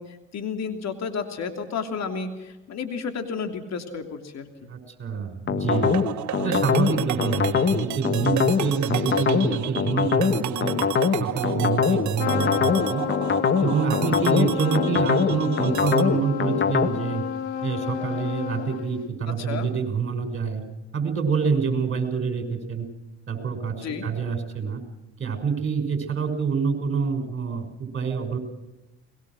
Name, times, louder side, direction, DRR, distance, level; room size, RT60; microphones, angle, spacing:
voice 1, 0.0-4.7 19.4-19.7 23.8-24.1, left 5 dB, 50° left, 6 dB, 3.0 m, -32 dB
voice 2, 4.7-6.0 6.4-10.8 11.2-13.0 13.6-17.2 17.6-20.6 20.9-22.9 23.3-24.8 25.2-28.4, right 5 dB, 35° right, 7 dB, 6.3 m, -26 dB
sound 1, 5.5-16.9, left 6 dB, 35° left, 1.5 m, -23 dB
sound 2, 5.7-16.0, right 12 dB, 60° right, 1.6 m, -33 dB
Trumpet, 12.2-19.1, left 9 dB, 90° left, 2.5 m, -31 dB
22.5 x 21.5 x 6.3 m, 1.0 s
hypercardioid pair, 70°, 33 cm